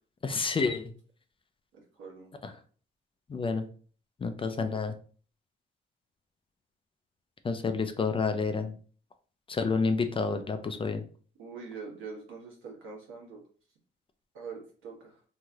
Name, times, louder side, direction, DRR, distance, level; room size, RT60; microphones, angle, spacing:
voice 1, 0.2-0.9 2.4-2.5 3.3-3.7 4.2-4.9 7.4-8.7 9.5-11.0, left 4 dB, 25° left, 8 dB, 0.4 m, -29 dB
voice 2, 1.7-2.3 11.4-13.4 14.3-15.2, right 5 dB, 80° right, -1 dB, 1.2 m, -44 dB
3.1 x 2.7 x 2.4 m, 0.42 s
cardioid pair, 90°, 20 cm